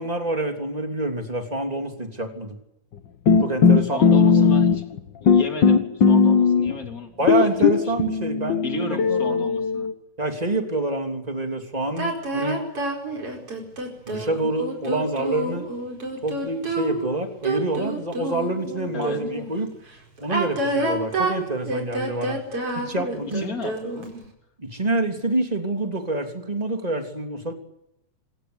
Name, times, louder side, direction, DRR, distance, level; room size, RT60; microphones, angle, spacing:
voice 1, 0.0-2.6 3.4-4.5 7.2-9.5 10.2-12.6 14.1-15.7 16.2-19.7 20.2-22.4 22.7-23.5 24.6-27.5, right 2 dB, 10° right, 5 dB, 2.8 m, -27 dB
sound 1, 3.3-5.0 5.3-6.9 7.3-9.9, left 6 dB, 50° left, 1.4 m, -18 dB
voice 2, 3.8-4.8 5.2-7.5 7.9-8.2 8.6-9.9 18.9-19.2 23.3-24.1, left 3 dB, 25° left, 5 dB, 3.6 m, -34 dB
sound 2, 12.0-19.5 20.2-24.2, right 2 dB, 45° right, 5.8 m, -28 dB
26.0 x 22.5 x 8.2 m, 0.85 s
omnidirectional pair, 3.7 m